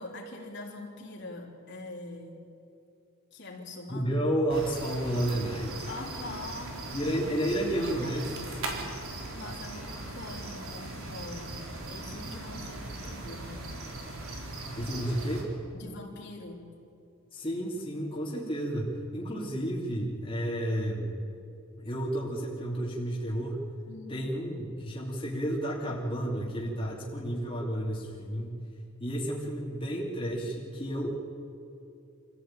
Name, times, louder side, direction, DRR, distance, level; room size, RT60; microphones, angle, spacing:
voice 1, 0.0-2.4 3.3-4.1 5.9-7.0 8.0-13.8 15.7-16.7 23.9-24.2, left 2 dB, 50° left, -1 dB, 3.5 m, -43 dB
voice 2, 3.9-5.9 6.9-8.3 14.7-15.5 17.3-21.2 21.8-23.6 24.1-28.6 29.0-31.2, right 1 dB, 25° left, -4 dB, 2.9 m, -31 dB
sound 1, 4.5-15.4, right 2 dB, 70° right, 4.3 m, -39 dB
26.5 x 15.5 x 9.0 m, 2.7 s
head